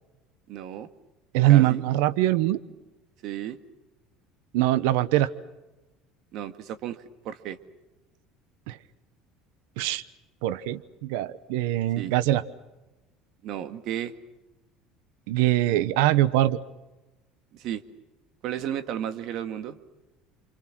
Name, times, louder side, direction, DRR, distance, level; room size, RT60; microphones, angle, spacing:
voice 1, 0.5-0.9 1.5-1.8 3.2-3.6 6.3-7.6 12.0-12.1 13.4-14.1 17.5-17.8 18.4-19.8, right 10 dB, 65° right, 9 dB, 2.0 m, -33 dB
voice 2, 1.3-2.6 4.5-5.3 8.7-8.8 9.8-10.0 10.4-12.4 15.3-16.6, right 15 dB, 80° right, 16 dB, 1.0 m, -22 dB
29.0 x 26.0 x 6.1 m, 1.0 s
supercardioid pair, 100°, 0 cm